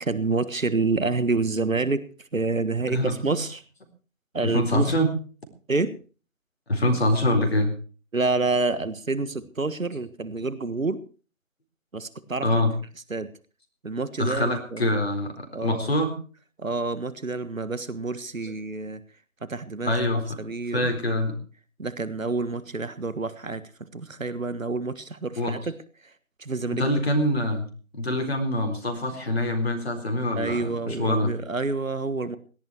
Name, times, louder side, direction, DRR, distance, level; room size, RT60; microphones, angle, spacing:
voice 1, 0.1-2.0 2.3-3.6 4.3-4.9 5.7-5.9 8.1-11.0 11.9-12.5 13.1-13.3 13.8-15.0 15.5-15.9 16.6-19.0 19.4-20.0 20.4-20.9 21.8-23.6 23.9-25.7 26.4-26.9 30.4-32.4, right 3 dB, 70° right, 14 dB, 1.6 m, -28 dB
voice 2, 2.9-3.4 4.4-5.1 6.7-7.7 12.4-12.7 14.2-16.1 18.4-18.5 19.8-20.4 20.7-21.4 25.4-25.6 26.7-27.7 27.9-31.3, left 1 dB, 45° left, 5 dB, 4.1 m, -25 dB
17.5 x 12.0 x 4.6 m, 0.38 s
figure-of-eight pair, 160°, 42 cm